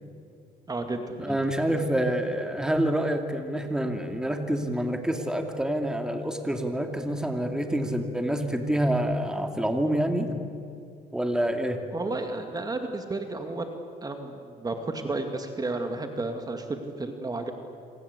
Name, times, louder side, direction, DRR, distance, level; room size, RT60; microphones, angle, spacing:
voice 1, 0.7-1.5 11.9-13.8 14.0-17.5, right 2 dB, 20° right, 5 dB, 2.3 m, -32 dB
voice 2, 1.2-10.4 11.1-11.8, right 1 dB, 5° right, 5 dB, 2.6 m, -27 dB
27.5 x 25.5 x 8.3 m, 2.4 s
cardioid pair, 110°, 17 cm